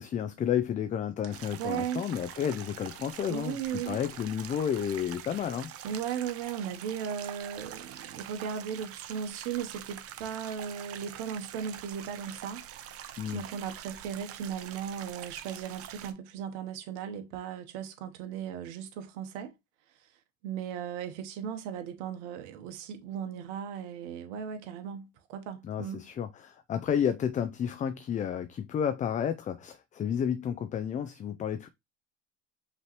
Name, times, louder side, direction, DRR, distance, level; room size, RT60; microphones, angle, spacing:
voice 1, 0.0-3.6 3.9-5.7 13.2-13.4 25.6-31.7, left 8 dB, 20° left, 0.4 m, -31 dB
sound 1, 1.3-16.1, right 10 dB, 40° right, 0.8 m, -45 dB
voice 2, 1.6-2.0 3.3-4.0 5.8-19.5 20.4-26.0, right 8 dB, 70° right, 1.0 m, -37 dB
5.6 x 3.0 x 3.0 m
hypercardioid pair, 90°, 37 cm